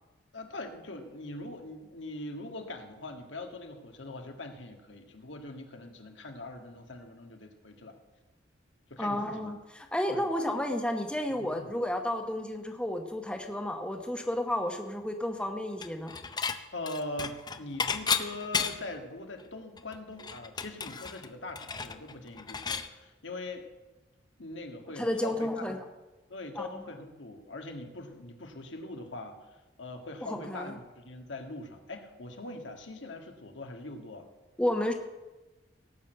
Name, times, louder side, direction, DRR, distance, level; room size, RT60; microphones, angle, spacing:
voice 1, 0.3-8.0 8.9-9.5 10.1-10.3 11.4-11.7 16.7-23.7 24.4-25.8 26.3-34.3, left 2 dB, 85° left, 4 dB, 1.6 m, -42 dB
voice 2, 9.0-16.1 25.0-25.8 26.6-26.7 30.3-30.7 34.6-34.9, left 1 dB, 5° left, 4 dB, 1.0 m, -32 dB
Dishes pots and pans / Chink clink, 15.8-16.6 16.9-19.0 19.4-19.5 19.8-22.9, left 6 dB, 20° left, 0.6 m, -33 dB
18.0 x 6.3 x 7.8 m, 1.1 s
head